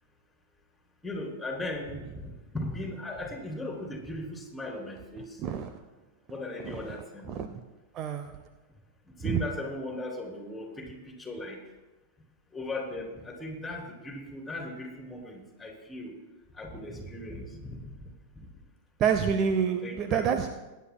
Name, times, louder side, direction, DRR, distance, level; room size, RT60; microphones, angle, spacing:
voice 1, 1.0-5.4 6.3-7.3 9.2-11.6 12.5-16.1 16.5-18.5 19.8-20.5, left 1 dB, 10° left, 3.1 m, -38 dB
voice 2, 7.3-7.6 8.0-8.3 9.3-9.4 19.0-20.6, right 7 dB, 35° right, 0.6 m, -27 dB
21.5 x 10.0 x 2.2 m
figure-of-eight pair, 90°, 0 cm